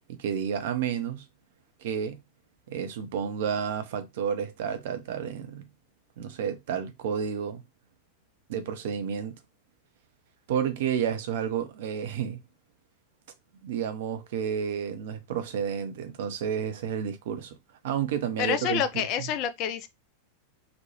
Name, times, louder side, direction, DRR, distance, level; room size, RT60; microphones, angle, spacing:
voice 1, 0.1-1.3 1.8-2.2 2.7-5.7 6.2-7.6 8.5-9.3 10.5-12.4 13.6-17.5 17.8-18.8, right 8 dB, 55° right, 0.5 m, -30 dB
voice 2, 18.4-19.9, left 9 dB, 40° left, 0.4 m, -28 dB
3.0 x 2.1 x 2.8 m
figure-of-eight pair, 90°, 0 cm